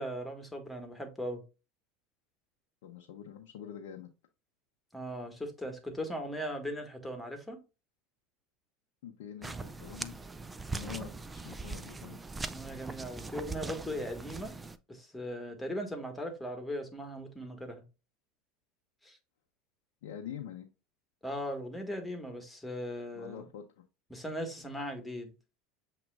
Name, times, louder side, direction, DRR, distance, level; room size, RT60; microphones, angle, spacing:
voice 1, 0.0-1.4 4.9-7.6 12.5-14.5 14.9-17.8 19.0-19.2 21.2-23.4 24.1-25.3, equal, 10° left, 1.6 m, -38 dB
voice 2, 2.8-4.1 9.0-10.2 10.7-12.2 20.0-20.7 23.1-23.7, left 9 dB, 70° left, 0.7 m, -45 dB
sound 1, 9.4-14.8, right 3 dB, 15° right, 0.4 m, -41 dB
7.1 x 2.9 x 2.4 m
hypercardioid pair, 80°, 0 cm